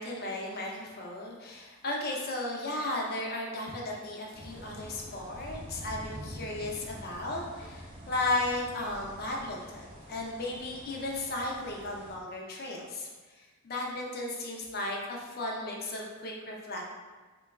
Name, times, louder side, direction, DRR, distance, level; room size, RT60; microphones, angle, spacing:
voice 1, 0.0-16.9, left 2 dB, 45° left, -1 dB, 0.5 m, -35 dB
sound 1, 4.3-12.2, equal, 25° right, 0.7 m, -46 dB
3.8 x 2.2 x 2.3 m, 1.3 s
head